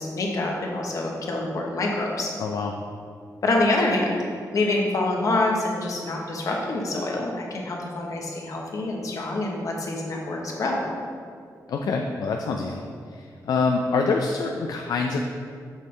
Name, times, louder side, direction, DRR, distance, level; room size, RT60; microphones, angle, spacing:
voice 1, 0.0-2.3 3.4-4.2 4.5-10.8, left 2 dB, 55° left, -1 dB, 1.0 m, -26 dB
voice 2, 2.4-2.7 11.7-12.8 13.5-15.2, left 4 dB, 70° left, 2 dB, 0.4 m, -25 dB
6.5 x 5.4 x 3.2 m, 2.2 s
wide cardioid pair, 145°, 7 cm